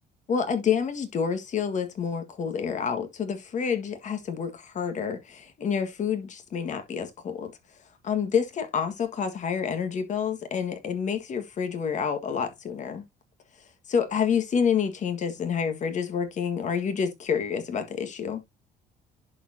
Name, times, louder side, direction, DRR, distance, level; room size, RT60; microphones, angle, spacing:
voice 1, 0.3-7.5 8.0-13.0 13.9-18.4, left 7 dB, 45° left, 1.6 m, -28 dB
10.5 x 4.4 x 2.7 m
cardioid pair, 110°, 17 cm